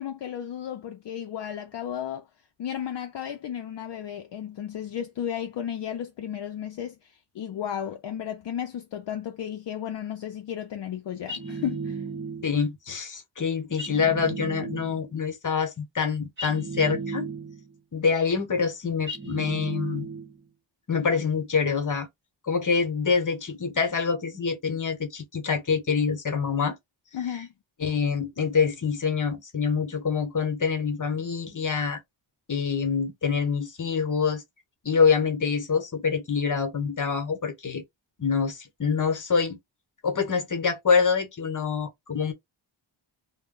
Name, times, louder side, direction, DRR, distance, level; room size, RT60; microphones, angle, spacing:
voice 1, 0.0-2.3 2.6-12.0 27.1-27.5, left 9 dB, 65° left, 0.5 m, -34 dB
sound 1, 11.3-12.6 13.8-15.1 16.4-17.7 19.1-20.4, right 4 dB, 25° right, 1.0 m, -35 dB
voice 2, 12.4-17.3 17.9-20.1 20.9-22.1 22.4-26.8 27.8-32.0 32.5-34.4 34.8-37.8 38.2-39.6 40.0-42.3, left 5 dB, 40° left, 1.0 m, -26 dB
2.1 x 2.1 x 3.7 m
wide cardioid pair, 100°, 47 cm